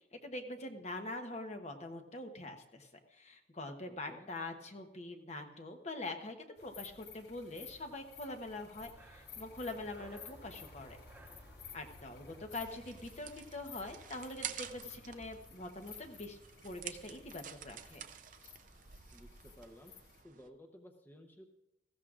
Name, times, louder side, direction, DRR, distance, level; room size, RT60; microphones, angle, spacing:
voice 1, 0.1-11.0 11.7-16.4 16.6-18.0, left 2 dB, 35° left, 5 dB, 1.0 m, -44 dB
voice 2, 3.9-4.3 19.1-19.9 20.2-21.5, equal, 10° left, 3 dB, 0.8 m, -56 dB
sound 1, 6.6-20.2, left 6 dB, 60° left, 1.1 m, -55 dB
Breathing, 8.6-13.5, right 1 dB, 10° right, 1.1 m, -59 dB
sound 2, 12.5-20.5, right 9 dB, 45° right, 0.5 m, -49 dB
19.5 x 15.0 x 2.5 m, 0.93 s
head